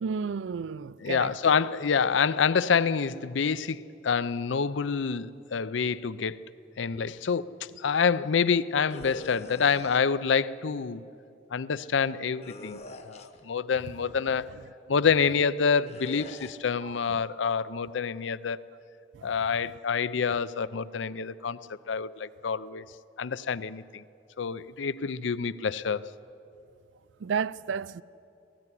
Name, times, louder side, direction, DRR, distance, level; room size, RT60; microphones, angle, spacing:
voice 1, 0.0-1.3 19.1-19.3 27.2-28.0, right 6 dB, 85° right, 0.4 m, -32 dB
voice 2, 1.0-6.4 6.8-7.5 7.8-11.0 11.5-12.8 13.0-14.5 14.9-18.6 19.2-21.6 21.9-22.8 23.2-24.0 24.4-26.1, left 6 dB, 85° left, 0.5 m, -27 dB
sound 1, 8.9-10.0 12.4-13.5 15.8-16.6, left 1 dB, 35° left, 0.9 m, -43 dB
18.0 x 15.0 x 9.9 m
head